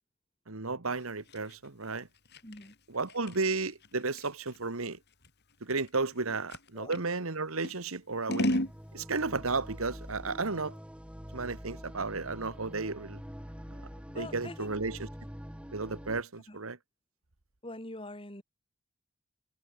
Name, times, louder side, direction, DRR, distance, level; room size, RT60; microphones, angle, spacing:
voice 1, 0.5-2.1 2.9-5.0 5.6-8.6 8.9-10.7 11.3-13.2 14.2-15.1 15.7-16.8, right 3 dB, 80° right, 1.7 m, -33 dB
Scissors, 0.9-7.1 7.6-8.8, left 1 dB, 50° left, 5.9 m, -36 dB
voice 2, 2.4-2.8 6.3-6.4 6.7-7.0 14.1-14.7 16.5-16.6 17.6-18.4, left 1 dB, 25° left, 7.6 m, -44 dB
sound 1, 8.3-16.2, equal, 5° right, 7.3 m, -45 dB
head